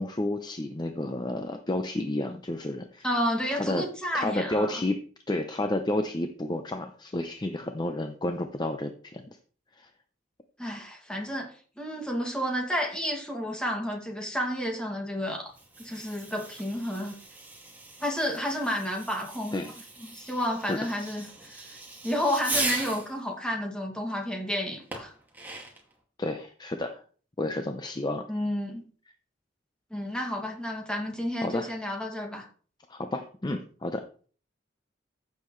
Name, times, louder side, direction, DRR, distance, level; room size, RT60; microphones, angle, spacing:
voice 1, 0.0-3.1 3.5-3.9 4.1-5.0 5.3-9.2 9.8-9.9 19.5-19.7 20.7-20.8 26.2-27.0 27.4-28.2 31.4-31.7 32.9-34.1, left 1 dB, 25° left, 0.7 m, -31 dB
voice 2, 3.0-4.8 10.6-15.5 15.8-17.2 18.0-19.6 20.0-21.8 22.0-25.1 28.3-28.8 29.9-32.4, equal, 5° left, 2.3 m, -31 dB
Fireworks, 15.5-23.1 24.9-25.9, right 2 dB, 10° right, 2.2 m, -38 dB
15.0 x 6.9 x 3.2 m
head